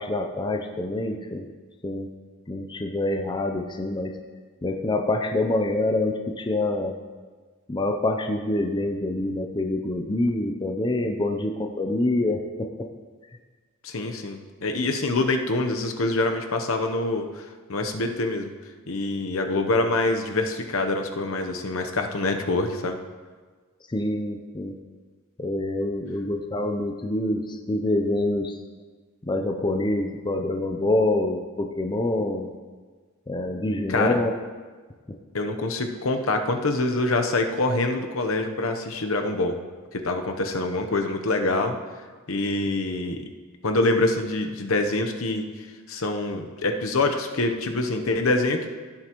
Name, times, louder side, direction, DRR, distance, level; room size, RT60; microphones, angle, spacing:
voice 1, 0.0-1.5 1.8-2.1 2.5-4.1 4.6-6.9 7.7-12.9 23.9-24.7 25.4-28.6 29.2-32.5 33.3-34.3, left 2 dB, 20° left, 4 dB, 0.6 m, -26 dB
voice 2, 13.8-18.5 18.9-23.0 33.9-34.2 35.3-39.6 39.9-41.8 42.3-43.3 43.6-45.5 45.9-48.7, left 2 dB, 70° left, 5 dB, 0.9 m, -25 dB
15.5 x 7.6 x 3.0 m, 1.4 s
head